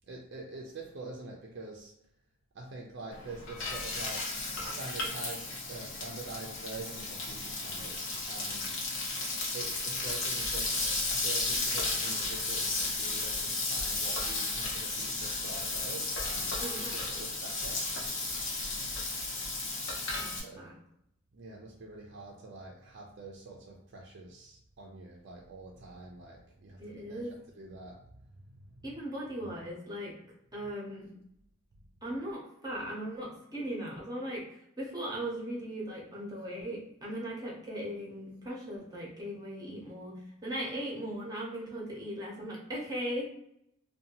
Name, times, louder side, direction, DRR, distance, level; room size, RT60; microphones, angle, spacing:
voice 1, 0.1-1.9 2.5-4.3 4.6-8.7 9.5-10.8 11.1-16.6 17.2-17.9 20.4-20.7 21.3-28.0 28.7-28.9, right 3 dB, 60° right, -2 dB, 0.4 m, -45 dB
Frying (food), 3.1-20.4, left 3 dB, 75° left, 0.8 m, -34 dB
voice 2, 16.6-17.3 20.1-20.8 26.8-27.4 28.8-30.2 30.5-31.1 32.0-43.3, equal, 20° right, -3 dB, 0.6 m, -38 dB
2.6 x 2.2 x 2.8 m, 0.75 s
head